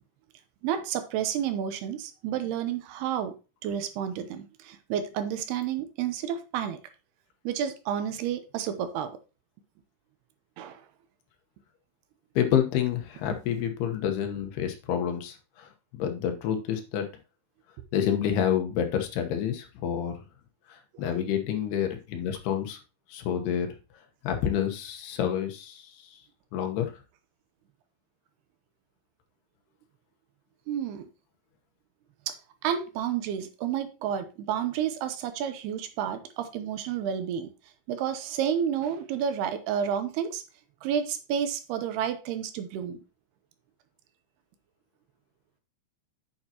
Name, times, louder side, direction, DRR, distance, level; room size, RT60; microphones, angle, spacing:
voice 1, 0.6-3.4 3.6-6.8 7.4-9.1 10.6-10.8 20.9-21.0 30.7-31.1 32.3-32.4 32.6-37.5 37.9-40.4 40.8-43.0, right 9 dB, 80° right, 2.8 m, -30 dB
voice 2, 12.4-17.1 17.9-20.2 20.7-22.8 23.1-23.7 24.2-26.2 26.5-27.0, left 9 dB, 80° left, 3.1 m, -28 dB
8.7 x 7.0 x 2.9 m
omnidirectional pair, 4.6 m